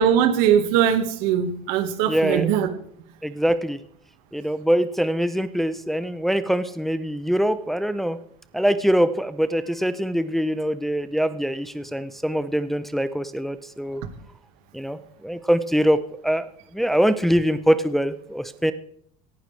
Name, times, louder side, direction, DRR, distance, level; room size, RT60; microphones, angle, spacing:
voice 1, 0.0-2.7, right 9 dB, 85° right, 8 dB, 1.8 m, -20 dB
voice 2, 2.1-2.5 3.2-3.8 4.3-8.2 8.5-14.0 14.7-18.7, equal, ahead, 11 dB, 0.6 m, -23 dB
17.5 x 11.5 x 3.3 m, 0.65 s
cardioid pair, 125°, 19 cm